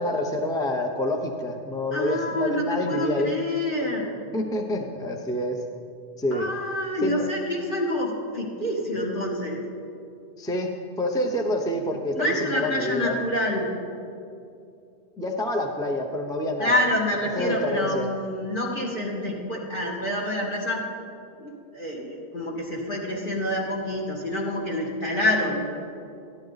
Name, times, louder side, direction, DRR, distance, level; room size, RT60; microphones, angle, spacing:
voice 1, 0.0-3.3 4.3-5.6 6.2-6.5 7.0-7.3 10.4-13.2 15.2-16.8 17.4-18.1, left 1 dB, 5° left, 1 dB, 0.6 m, -27 dB
voice 2, 1.9-4.1 6.3-9.6 12.1-13.7 16.6-20.8 21.4-25.6, left 1 dB, 50° left, -3 dB, 2.2 m, -27 dB
13.0 x 11.5 x 4.0 m, 2.5 s
omnidirectional pair, 1.1 m